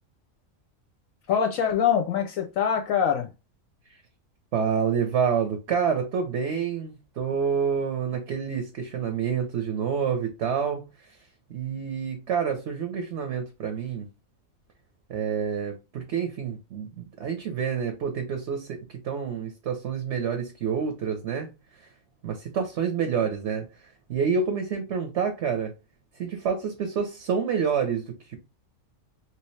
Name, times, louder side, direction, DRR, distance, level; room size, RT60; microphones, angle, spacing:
voice 1, 1.3-3.3, left 8 dB, 70° left, 0.9 m, -24 dB
voice 2, 4.5-10.8 11.5-14.1 15.1-21.5 22.2-25.7 26.2-28.4, right 6 dB, 60° right, 0.9 m, -28 dB
3.2 x 2.9 x 3.1 m
omnidirectional pair, 1.5 m